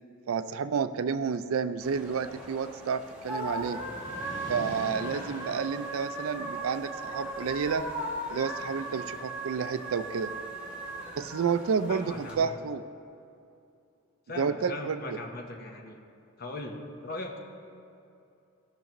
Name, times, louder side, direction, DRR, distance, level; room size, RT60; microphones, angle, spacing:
voice 1, 0.3-3.8 4.5-7.9 8.3-10.3 11.2-12.8 14.4-15.2, right 6 dB, 75° right, 12 dB, 0.4 m, -30 dB
sound 1, 1.8-12.3, right 1 dB, 5° right, 1.3 m, -38 dB
sound 2, 3.1-7.8 8.1-9.2, equal, 60° right, 1.9 m, -45 dB
voice 2, 11.9-12.5 14.3-16.0 16.4-17.4, left 2 dB, 45° left, 2 dB, 1.0 m, -39 dB
17.5 x 6.0 x 3.0 m, 2.7 s
head